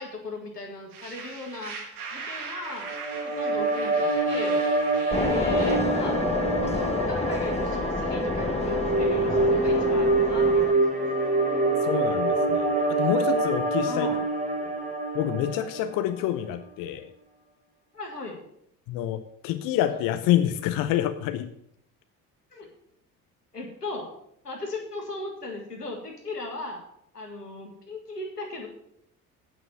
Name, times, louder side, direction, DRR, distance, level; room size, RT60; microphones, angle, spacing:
voice 1, 0.0-1.8 2.1-2.9 3.2-4.6 5.1-10.9 13.8-14.3 17.9-18.4 22.5-22.7 23.5-24.1 24.4-26.8 27.1-28.7, left 2 dB, 85° left, 0 dB, 1.8 m, -37 dB
sound 1, 0.9-5.8, right 5 dB, 75° right, 1.8 m, -40 dB
sound 2, 2.8-16.1, right 2 dB, 15° right, 2.2 m, -25 dB
sound 3, 5.1-10.7, left 3 dB, 15° left, 0.9 m, -29 dB
voice 2, 11.8-14.1 14.6-14.7 15.1-17.1 18.9-21.5, left 12 dB, 45° left, 10 dB, 0.7 m, -27 dB
9.0 x 5.8 x 8.2 m, 0.73 s
figure-of-eight pair, 55°, 46 cm